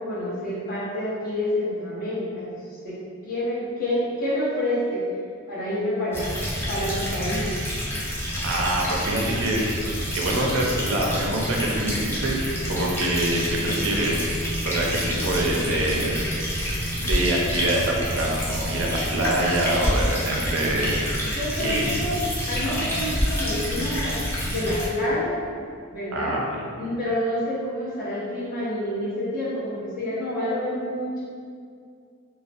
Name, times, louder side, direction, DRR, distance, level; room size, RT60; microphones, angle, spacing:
voice 1, 0.0-2.5 2.8-3.0 3.2-5.0 5.5-6.3 6.7-7.4 21.3-24.2 24.5-25.4 25.9-26.4 26.8-31.2, left 1 dB, 45° left, -9 dB, 0.7 m, -28 dB
sound 1, 6.1-24.9, equal, 10° left, 0.3 m, -28 dB
voice 2, 8.4-9.6 10.1-12.4 12.7-14.2 14.6-16.2 17.0-21.2 21.6-21.9 22.6-22.8 26.1-26.6, right 1 dB, 75° right, -2 dB, 0.4 m, -25 dB
2.4 x 2.0 x 2.5 m, 2.2 s
head